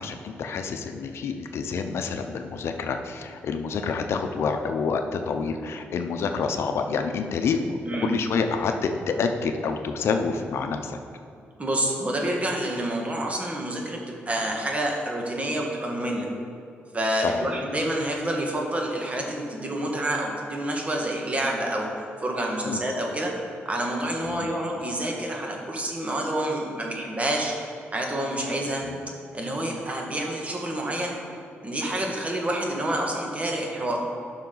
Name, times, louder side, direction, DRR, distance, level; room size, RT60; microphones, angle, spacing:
voice 1, 0.0-11.0 17.2-17.5 22.6-22.8 24.2-24.5 28.8-29.0, left 5 dB, 70° left, 6 dB, 0.6 m, -28 dB
voice 2, 7.8-8.2 11.6-16.3 16.9-21.9 22.2-23.3 23.7-27.5 27.9-28.8 29.3-31.2 31.6-34.0, right 1 dB, 30° right, 0 dB, 1.7 m, -28 dB
11.5 x 5.8 x 4.0 m, 2.5 s
cardioid pair, 70°, 4 cm